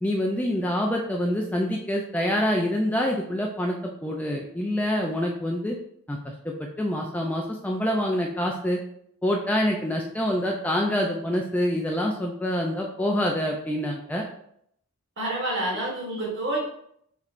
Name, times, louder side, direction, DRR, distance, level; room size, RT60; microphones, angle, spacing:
voice 1, 0.0-5.8 6.1-6.2 6.4-8.8 9.2-14.2, equal, 5° left, -1 dB, 0.3 m, -26 dB
voice 2, 15.2-16.6, right 1 dB, 55° right, -3 dB, 1.5 m, -28 dB
6.4 x 3.1 x 2.5 m, 0.70 s
head